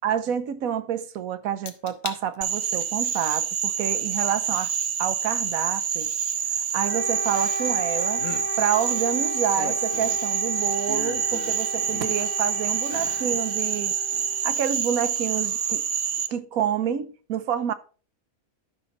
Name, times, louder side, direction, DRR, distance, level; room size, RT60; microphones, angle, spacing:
voice 1, 0.0-4.7 5.0-6.1 6.7-8.2 8.6-13.9 14.4-15.8 16.3-17.7, right 9 dB, 75° right, 1.2 m, -28 dB
sound 1, 1.7-2.2 2.7-3.1 4.6-4.7 7.3-7.9 8.1-8.5 9.3-10.3 10.9-12.4 12.8-13.3 13.7-13.8, left 8 dB, 70° left, 1.3 m, -38 dB
Frog, 2.4-16.3, right 8 dB, 60° right, 1.1 m, -27 dB
Wind instrument woodwind instrument, 6.8-14.9, right 1 dB, 50° left, 1.5 m, -35 dB
11.0 x 5.9 x 4.1 m
omnidirectional pair, 1.5 m